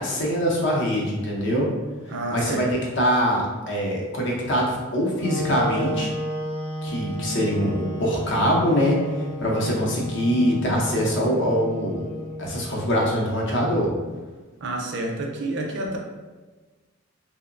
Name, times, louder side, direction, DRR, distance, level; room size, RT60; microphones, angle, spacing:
voice 1, 0.0-1.7 2.3-6.1 6.8-12.0 12.4-13.9, equal, 60° left, -2 dB, 0.6 m, -23 dB
voice 2, 2.1-2.7 14.6-16.0, right 2 dB, 55° right, 0 dB, 0.4 m, -29 dB
Wind instrument woodwind instrument, 5.2-13.2, equal, 5° left, 0.5 m, -33 dB
2.8 x 2.1 x 2.4 m, 1.3 s
head